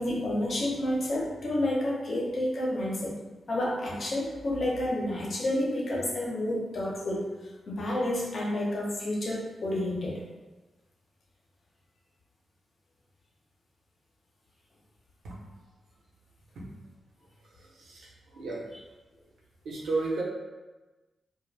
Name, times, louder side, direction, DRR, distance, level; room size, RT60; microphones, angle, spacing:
voice 1, 0.0-3.2 3.5-10.2, left 1 dB, 60° left, -4 dB, 0.8 m, -30 dB
voice 2, 17.6-18.6 19.6-20.2, right 3 dB, 90° right, -4 dB, 0.6 m, -33 dB
2.5 x 2.1 x 3.2 m, 1.2 s
cardioid pair, 70°, 0 cm